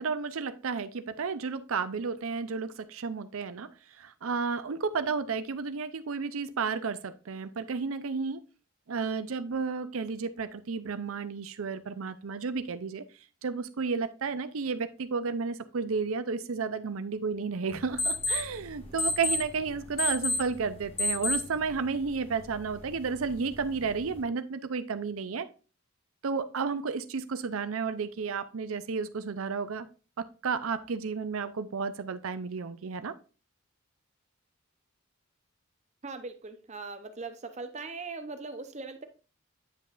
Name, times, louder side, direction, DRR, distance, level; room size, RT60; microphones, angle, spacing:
voice 1, 0.0-3.7 4.0-8.4 8.9-13.0 13.4-25.5 26.2-29.9 30.2-33.2, right 5 dB, 85° right, 12 dB, 0.6 m, -32 dB
sound 1, 17.7-24.2, left 2 dB, 30° left, 1.6 m, -34 dB
voice 2, 36.0-39.1, right 3 dB, 35° right, 9 dB, 0.7 m, -40 dB
9.0 x 5.4 x 2.5 m, 0.35 s
head